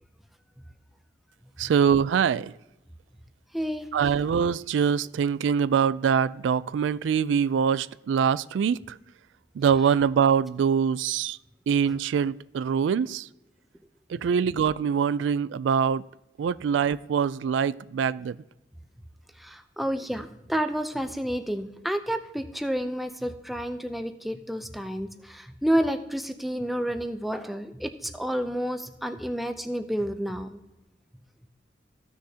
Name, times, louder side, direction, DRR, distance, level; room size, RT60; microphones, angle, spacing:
voice 1, 1.6-2.5 3.9-9.0 9.6-11.4 11.7-13.3 14.1-16.0 16.4-18.4, right 7 dB, 85° right, 0.3 m, -24 dB
voice 2, 3.5-3.9 19.4-30.5, equal, ahead, 0.5 m, -30 dB
15.5 x 6.4 x 2.8 m
head